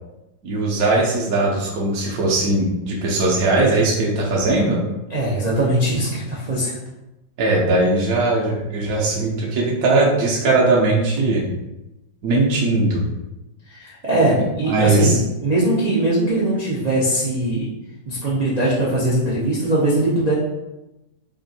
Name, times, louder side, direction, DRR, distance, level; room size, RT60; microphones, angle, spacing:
voice 1, 0.4-4.8 7.4-11.5 12.2-13.0 14.4-15.2, right 2 dB, 65° right, -3 dB, 1.0 m, -19 dB
voice 2, 5.1-6.8 13.7-17.7 18.1-20.3, right 1 dB, 90° right, -8 dB, 0.3 m, -21 dB
3.5 x 2.5 x 4.0 m, 0.97 s
omnidirectional pair, 2.0 m